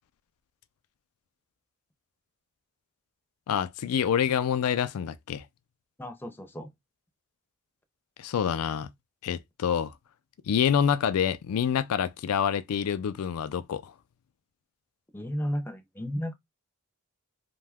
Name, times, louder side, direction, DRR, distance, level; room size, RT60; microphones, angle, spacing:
voice 1, 3.5-5.4 8.2-8.9 9.2-9.9 10.5-13.9, left 8 dB, 90° left, 0.4 m, -27 dB
voice 2, 6.0-6.7 15.1-16.3, equal, 10° left, 0.5 m, -33 dB
2.7 x 2.2 x 3.4 m
head